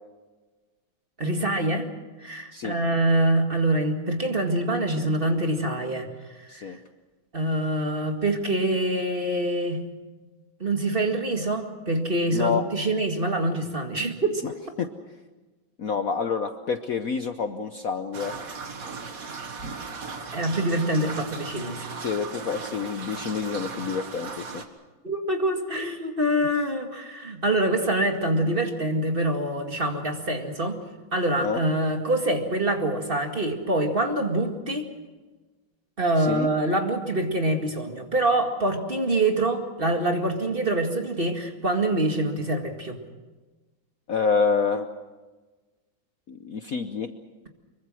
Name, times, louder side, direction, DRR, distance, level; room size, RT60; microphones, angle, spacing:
voice 1, 1.2-1.9 2.2-6.1 6.4-6.7 7.3-9.8 10.6-14.4 20.3-21.9 25.0-30.8 31.1-34.8 36.0-43.0, right 1 dB, 30° right, 4 dB, 2.1 m, -25 dB
voice 2, 12.3-12.6 14.4-14.5 14.8-14.9 15.8-18.3 21.9-24.6 31.4-31.6 36.2-36.5 44.1-44.9 46.3-47.1, left 5 dB, 55° left, 8 dB, 1.1 m, -27 dB
sound 1, 18.1-24.7, right 4 dB, 45° right, 1.9 m, -37 dB
24.5 x 23.0 x 6.2 m, 1.2 s
omnidirectional pair, 2.1 m